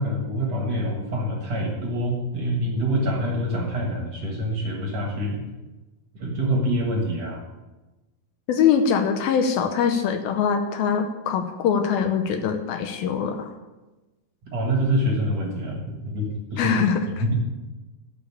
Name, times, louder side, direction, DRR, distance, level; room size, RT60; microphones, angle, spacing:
voice 1, 0.0-5.4 6.2-7.4 14.5-16.7 17.2-17.3, equal, 50° right, 0 dB, 2.2 m, -26 dB
voice 2, 8.5-13.5 16.6-17.1, left 7 dB, 75° left, 6 dB, 2.5 m, -23 dB
12.0 x 5.4 x 8.4 m, 1.1 s
omnidirectional pair, 4.6 m